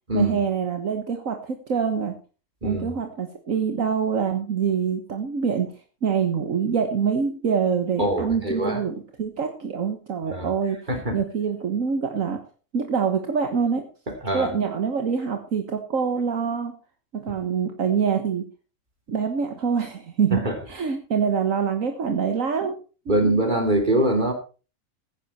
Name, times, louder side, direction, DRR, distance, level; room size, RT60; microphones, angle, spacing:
voice 1, 0.1-2.1 2.6-5.7 6.0-10.8 11.1-12.4 12.7-13.9 14.3-16.8 17.1-18.5 19.1-22.8 23.1-23.3, right 6 dB, 65° right, 1.8 m, -25 dB
voice 2, 8.0-8.8 10.3-10.5 10.9-11.1 14.2-14.5 20.3-20.5 23.1-24.3, right 1 dB, 30° right, 3.3 m, -23 dB
15.0 x 10.5 x 4.3 m
omnidirectional pair, 1.5 m